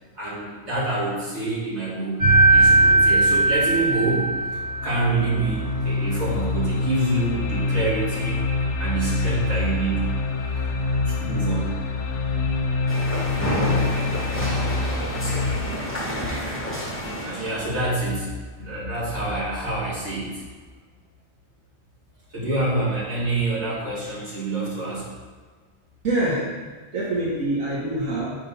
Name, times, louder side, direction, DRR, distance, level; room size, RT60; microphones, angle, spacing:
voice 1, 0.2-4.3 4.8-8.4 8.8-10.1 11.1-11.7 17.2-18.3 18.5-20.4 22.3-25.1, right 2 dB, 55° right, -8 dB, 2.2 m, -26 dB
sound 1, 2.2-5.1, right 2 dB, 40° right, 0.9 m, -18 dB
sound 2, 4.2-15.6, left 3 dB, 65° left, 0.9 m, -26 dB
sound 3, 12.9-17.8, equal, 10° left, 0.8 m, -29 dB
voice 2, 26.0-26.4 26.9-28.2, right 1 dB, 90° right, -7 dB, 1.7 m, -24 dB
5.6 x 3.6 x 5.4 m, 1.4 s
omnidirectional pair, 1.4 m